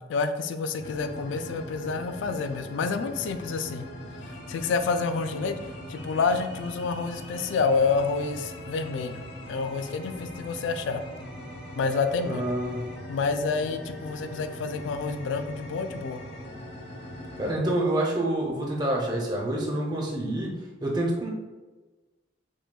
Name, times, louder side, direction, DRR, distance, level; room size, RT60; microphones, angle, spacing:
voice 1, 0.0-3.9 4.2-5.6 5.9-11.0 11.8-12.5 13.1-16.2, left 4 dB, 90° left, 8 dB, 0.3 m, -28 dB
sound 1, 0.8-17.6, equal, 65° left, 0.7 m, -41 dB
voice 2, 12.2-12.9 17.4-20.5 20.8-21.3, right 1 dB, 20° right, -1 dB, 0.6 m, -27 dB
6.1 x 2.3 x 2.2 m, 1.2 s
head